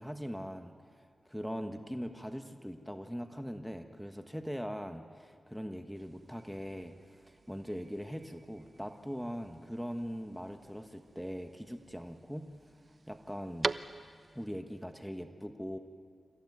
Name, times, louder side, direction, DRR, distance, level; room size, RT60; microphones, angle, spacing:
voice 1, 0.0-12.5 13.1-13.7 14.3-15.8, equal, ahead, 6 dB, 1.4 m, -41 dB
sound 1, 6.0-14.5, right 3 dB, 45° right, 0.6 m, -44 dB
27.0 x 14.5 x 9.6 m, 2.2 s
cardioid pair, 55°, 0 cm